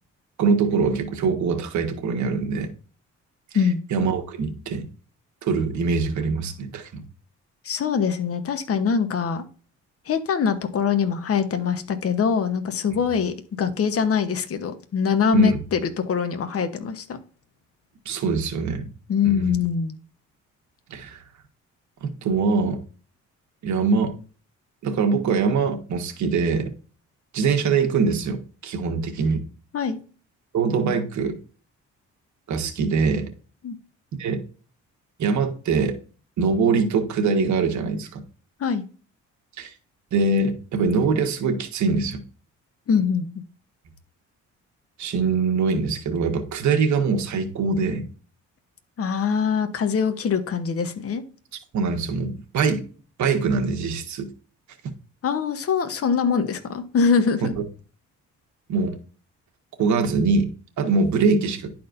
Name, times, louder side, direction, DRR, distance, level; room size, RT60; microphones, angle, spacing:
voice 1, 0.4-2.7 3.9-4.8 5.4-7.0 15.3-15.5 18.0-18.9 19.2-19.6 20.9-21.2 22.0-22.8 23.6-24.1 24.8-26.7 27.3-29.4 30.5-31.4 32.5-33.3 34.2-34.4 35.2-36.0 36.4-38.2 39.6-39.7 40.1-42.2 45.0-48.0 51.7-52.8 53.2-54.3 57.4-57.6 58.7-58.9 59.8-60.5 60.8-61.7, right 4 dB, 70° right, 4 dB, 1.5 m, -23 dB
voice 2, 3.5-3.8 7.6-9.4 10.0-17.2 19.1-20.0 29.7-30.0 33.6-33.8 38.6-38.8 42.9-43.3 49.0-51.2 55.2-57.5, left 6 dB, 50° left, 8 dB, 1.1 m, -23 dB
11.5 x 4.4 x 2.6 m, 0.38 s
cardioid pair, 90°, 30 cm